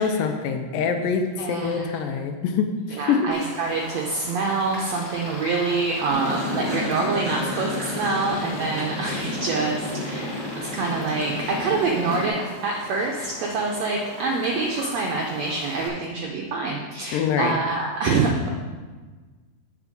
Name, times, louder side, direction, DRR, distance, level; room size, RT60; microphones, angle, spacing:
voice 1, 0.0-3.3 17.1-17.5, left 6 dB, 85° left, 6 dB, 2.3 m, -24 dB
voice 2, 1.4-2.0 2.9-18.5, right 3 dB, 80° right, 0 dB, 1.5 m, -26 dB
Raindrop, 3.3-15.9, left 1 dB, 25° left, 2.3 m, -40 dB
sound 1, 4.7-12.3, left 1 dB, 45° left, 0.8 m, -43 dB
sound 2, 6.1-12.2, left 1 dB, 30° right, 0.7 m, -31 dB
8.5 x 5.8 x 5.2 m, 1.4 s
omnidirectional pair, 4.0 m